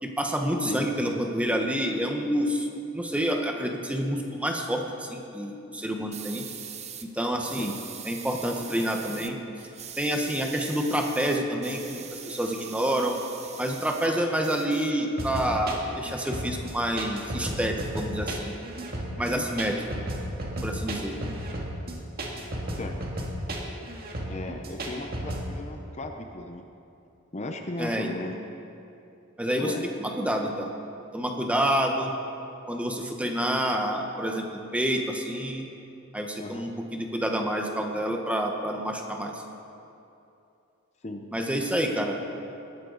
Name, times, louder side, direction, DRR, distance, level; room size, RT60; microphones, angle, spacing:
voice 1, 0.0-2.7 2.9-6.5 7.0-7.7 8.0-9.4 10.0-13.2 13.6-18.5 19.2-19.8 20.6-21.2 27.8-28.1 29.4-29.7 30.0-30.7 31.1-32.1 32.7-35.7 36.1-39.3 41.3-42.2, equal, 5° right, 2 dB, 1.2 m, -28 dB
voice 2, 0.6-1.2 7.5-7.7 19.2-19.4 22.7-23.0 24.3-26.6 27.3-28.4 29.6-29.9 36.4-36.7 41.0-41.3, left 1 dB, 35° left, 4 dB, 0.8 m, -36 dB
sound 1, 6.1-7.1 7.4-9.3 9.6-14.1 14.4-15.4, right 8 dB, 30° right, 0.7 m, -42 dB
sound 2, 15.2-25.4, right 1 dB, 50° right, 1.9 m, -33 dB
19.5 x 13.5 x 4.1 m, 2.7 s
head